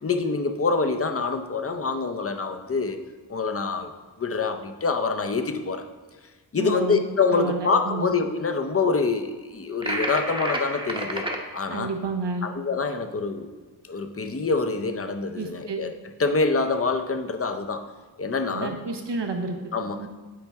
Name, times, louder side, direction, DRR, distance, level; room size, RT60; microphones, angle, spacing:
voice 1, 0.0-3.0 3.3-3.9 4.2-5.8 6.5-11.3 11.5-11.9 12.4-13.5 13.9-15.9 16.2-17.9 18.2-18.8 19.7-20.0, left 4 dB, 35° left, 6 dB, 0.6 m, -25 dB
voice 2, 6.6-7.0 7.3-8.1 11.7-12.5 15.3-15.8 18.5-19.6 19.9-20.1, right 4 dB, 75° right, 4 dB, 0.9 m, -30 dB
sound 1, 9.8-11.4, right 1 dB, 10° right, 0.9 m, -29 dB
8.6 x 4.5 x 3.5 m, 1.4 s
wide cardioid pair, 60°, 42 cm